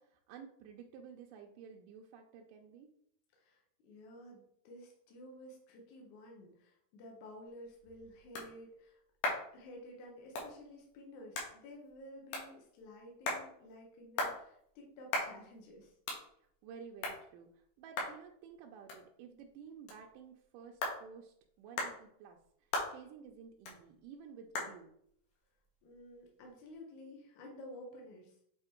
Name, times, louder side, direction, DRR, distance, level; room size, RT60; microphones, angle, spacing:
voice 1, 0.0-2.9 16.4-24.9, right 7 dB, 80° right, 1 dB, 2.2 m, -53 dB
voice 2, 3.3-9.0 9.5-15.9 25.8-28.4, left 1 dB, 65° left, 0 dB, 2.5 m, -52 dB
sound 1, 7.5-26.8, left 3 dB, 90° left, 3.3 m, -43 dB
7.8 x 4.2 x 4.4 m, 0.69 s
omnidirectional pair, 3.9 m